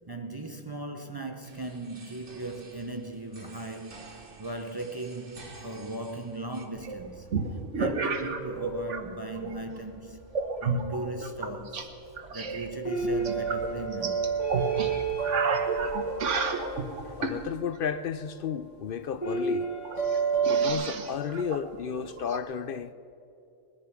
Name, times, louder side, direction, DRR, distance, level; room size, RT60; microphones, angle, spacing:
voice 1, 0.0-7.3 7.7-10.2 10.6-11.9 12.3-14.2, right 2 dB, 25° right, 0.6 m, -38 dB
sound 1, 1.4-6.7, right 3 dB, 50° right, 1.5 m, -50 dB
sound 2, 6.8-9.0 9.3-9.8 10.3-11.9 12.2-17.4 19.1-19.2 19.4-19.5 19.9-22.4, right 4 dB, 80° right, 1.4 m, -32 dB
sound 3, 10.3-11.9 12.8-17.8 19.2-20.7, right 5 dB, 35° left, 2.2 m, -30 dB
voice 2, 17.0-19.7 20.5-22.9, left 7 dB, 60° left, 0.6 m, -33 dB
20.0 x 10.5 x 6.0 m
omnidirectional pair, 1.2 m